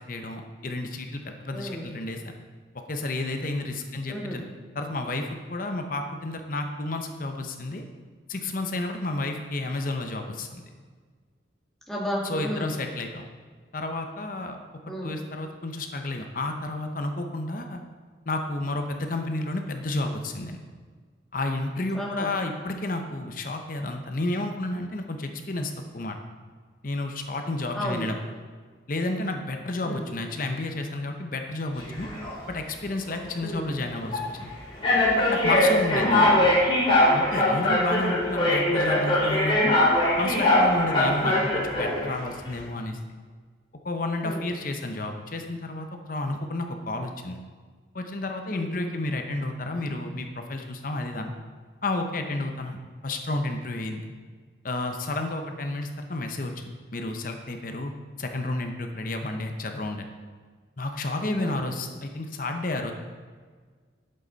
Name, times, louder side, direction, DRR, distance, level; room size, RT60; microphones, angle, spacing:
voice 1, 0.0-2.4 2.9-4.4 4.7-7.8 8.3-10.6 12.2-13.3 13.7-14.6 15.0-17.8 18.3-20.6 21.3-26.2 26.8-28.2 28.9-32.1 32.5-34.5 35.2-36.2 37.1-39.8 40.2-43.0 43.8-47.4 47.9-51.3 51.8-54.0 54.6-57.9 58.2-60.1 60.8-62.9, left 2 dB, 45° left, 5 dB, 0.8 m, -31 dB
voice 2, 1.5-1.8 4.1-4.4 11.9-12.7 14.9-15.2 21.9-22.3 27.7-28.1 29.8-30.0 33.4-33.7 35.9-36.6 44.2-44.4 48.5-48.7 61.2-61.6, equal, ahead, -4 dB, 1.8 m, -32 dB
sound 1, 31.8-32.3 33.1-33.3 34.1-34.2 34.8-42.1, left 1 dB, 30° left, 2.6 m, -22 dB
11.5 x 7.8 x 4.0 m, 1.5 s
head